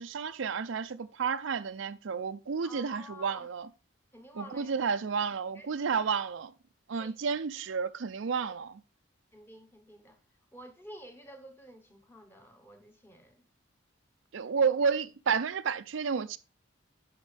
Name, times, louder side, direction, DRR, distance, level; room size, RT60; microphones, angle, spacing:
voice 1, 0.0-3.7 4.4-6.5 6.9-8.8 14.3-16.4, right 6 dB, 70° right, 0.5 m, -31 dB
voice 2, 2.6-3.5 4.1-4.9 5.5-6.2 7.0-7.3 7.7-7.8 9.3-10.2 10.5-13.5 14.6-14.9, left 1 dB, 10° left, 1.0 m, -51 dB
10.5 x 5.0 x 3.3 m
head